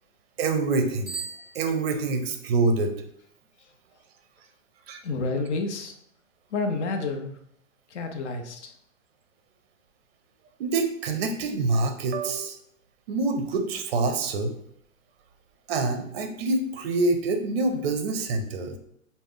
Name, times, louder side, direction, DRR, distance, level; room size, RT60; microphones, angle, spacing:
voice 1, 0.4-1.1 1.5-3.0 4.9-5.0 10.6-12.6 13.1-14.5 15.7-18.8, right 3 dB, 50° right, 6 dB, 0.5 m, -26 dB
Bicycle bell, 1.0-2.3, right 5 dB, 5° right, 0.6 m, -39 dB
voice 2, 5.0-5.9 6.5-7.3 7.9-8.7, left 3 dB, 55° left, 5 dB, 0.5 m, -29 dB
2.3 x 2.0 x 3.5 m, 0.72 s
hypercardioid pair, 150°, 41 cm